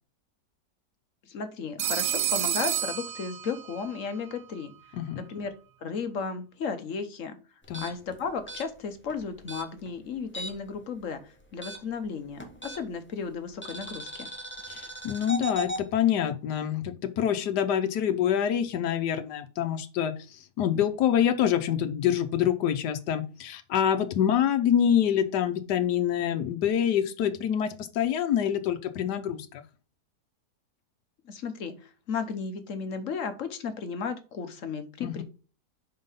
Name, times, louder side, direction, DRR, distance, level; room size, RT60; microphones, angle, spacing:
voice 1, 1.2-4.7 5.1-5.5 5.8-7.4 7.8-14.3 31.3-35.2, left 5 dB, 55° left, 9 dB, 1.1 m, -34 dB
Telephone, 1.8-3.9, right 11 dB, 90° right, 1.3 m, -29 dB
sound 1, 7.6-10.8 11.0-13.1 13.6-15.8, equal, 10° left, 0.8 m, -38 dB
voice 2, 14.7-29.6 35.0-35.2, left 9 dB, 90° left, 7 dB, 1.3 m, -26 dB
5.2 x 4.6 x 5.5 m, 0.35 s
omnidirectional pair, 1.7 m